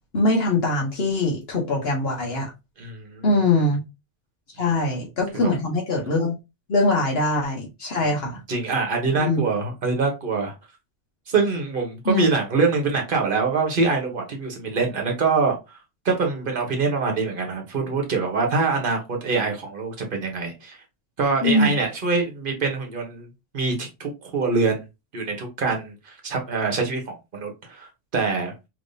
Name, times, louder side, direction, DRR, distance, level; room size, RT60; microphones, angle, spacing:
voice 1, 0.1-2.5 3.2-3.8 4.5-6.3 6.7-8.4 9.2-9.4 12.0-12.3 21.4-21.7, left 2 dB, 60° left, 1.1 m, -22 dB
voice 2, 2.8-3.3 5.3-5.5 8.0-8.2 8.5-10.5 11.3-15.6 16.0-20.8 21.2-23.3 23.5-24.8 25.1-28.5, right 4 dB, 50° right, 1.1 m, -24 dB
3.5 x 3.0 x 2.6 m
omnidirectional pair, 1.2 m